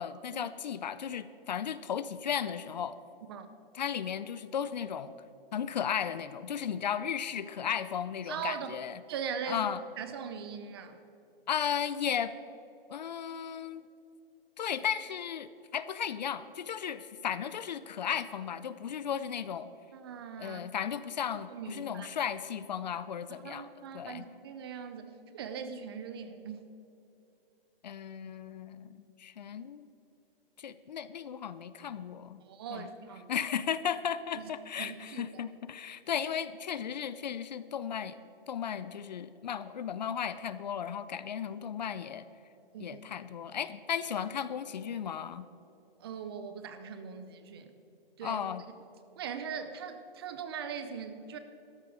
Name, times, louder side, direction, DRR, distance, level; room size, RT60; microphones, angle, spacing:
voice 1, 0.0-3.0 3.7-5.1 5.5-9.0 9.5-9.8 11.5-12.3 12.9-13.8 14.6-19.7 20.4-23.7 23.9-24.2 27.8-29.9 30.6-32.4 32.7-32.9 33.3-38.2 38.5-42.3 42.8-45.5 48.2-48.6, left 8 dB, 50° left, 14 dB, 0.5 m, -35 dB
voice 2, 8.3-8.8 9.1-9.7 10.0-11.0 19.9-20.6 21.5-22.1 23.4-26.7 32.5-33.3 34.3-34.5 34.8-35.4 42.7-43.0 46.0-47.7 48.2-48.4 49.2-51.4, right 7 dB, 25° right, 9 dB, 0.6 m, -40 dB
13.0 x 11.0 x 4.8 m, 2.8 s
hypercardioid pair, 155°, 29 cm